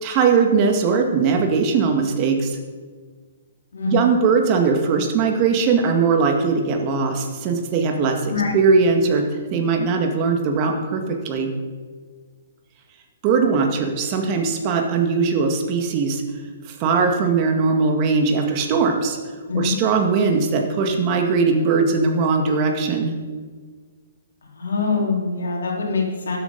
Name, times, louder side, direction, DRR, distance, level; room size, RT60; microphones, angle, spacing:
voice 1, 0.0-2.6 3.9-11.5 13.2-16.2 16.8-19.2 19.5-23.2, right 5 dB, 35° right, 3 dB, 2.0 m, -20 dB
voice 2, 3.7-4.0 8.3-8.5 19.5-19.8 24.5-26.4, left 4 dB, 75° left, 0 dB, 3.0 m, -23 dB
12.0 x 8.3 x 5.4 m, 1.5 s
hypercardioid pair, 130°, 0 cm